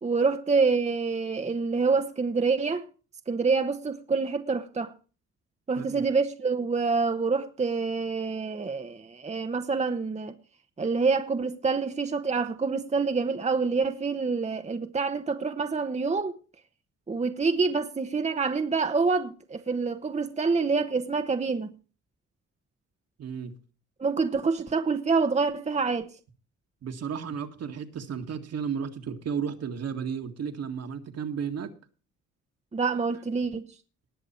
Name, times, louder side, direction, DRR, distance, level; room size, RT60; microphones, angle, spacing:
voice 1, 0.0-2.9 3.3-4.9 5.7-10.3 10.8-16.4 17.1-21.7 24.0-26.1 32.7-33.6, right 4 dB, 20° right, 1.0 m, -27 dB
voice 2, 23.2-23.5 26.8-31.7, right 7 dB, 55° right, 1.9 m, -33 dB
19.0 x 6.7 x 4.4 m
cardioid pair, 90°, 30 cm